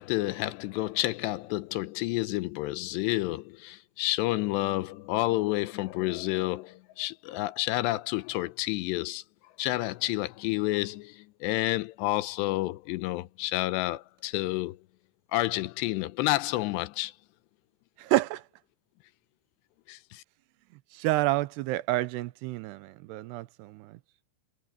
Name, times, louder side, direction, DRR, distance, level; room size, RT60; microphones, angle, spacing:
voice 1, 0.0-9.2 9.6-14.8 15.3-17.1 19.9-20.2, left 18 dB, 85° left, 2.9 m, -30 dB
voice 2, 18.0-18.4 20.9-24.0, right 17 dB, 85° right, 2.8 m, -29 dB
omnidirectional pair, 4.9 m